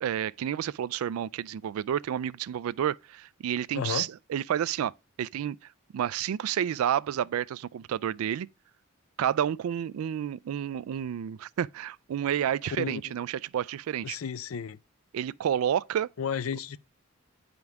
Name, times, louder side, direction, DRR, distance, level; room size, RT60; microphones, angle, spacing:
voice 1, 0.0-4.9 5.2-5.6 5.9-8.5 9.2-14.2 15.1-16.1, right 9 dB, 85° right, 0.3 m, -30 dB
voice 2, 3.7-4.1 12.8-13.1 14.0-14.8 16.2-16.8, left 7 dB, 80° left, 0.5 m, -33 dB
9.3 x 5.2 x 3.5 m
head